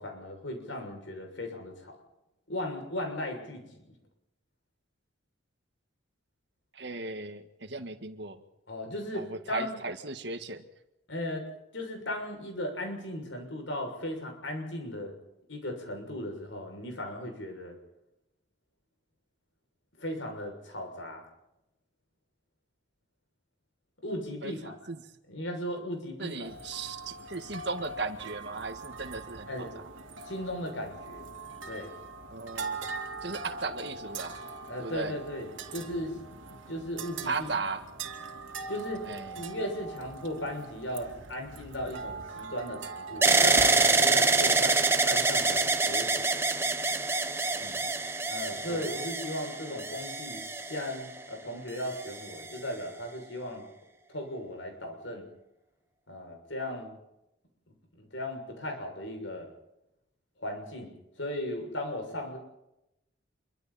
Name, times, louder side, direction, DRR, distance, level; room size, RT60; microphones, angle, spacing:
voice 1, 0.0-2.0 2.5-3.9 8.7-9.8 11.1-11.5 11.7-15.1 15.5-17.8 20.0-21.2 24.0-24.8 25.3-26.4 29.5-29.7 30.2-31.2 31.6-31.9 34.7-36.2 36.7-37.5 38.7-39.1 39.4-46.5 48.3-50.4 50.7-53.6 54.1-55.3 56.1-57.0 57.9-59.5 60.4-62.4, left 1 dB, 75° left, 3 dB, 6.7 m, -37 dB
voice 2, 6.7-8.4 9.1-10.7 24.4-25.0 26.2-29.8 32.3-32.8 33.2-34.4 34.8-35.2 37.2-37.8 39.0-39.4 47.5-47.9 48.7-48.9, right 3 dB, 60° right, 7 dB, 1.8 m, -37 dB
sound 1, 26.4-43.9, right 3 dB, 80° right, 2.6 m, -42 dB
sound 2, 43.2-51.2 51.9-52.6, right 3 dB, 15° right, 1.2 m, -26 dB
27.5 x 24.0 x 4.3 m, 0.87 s
head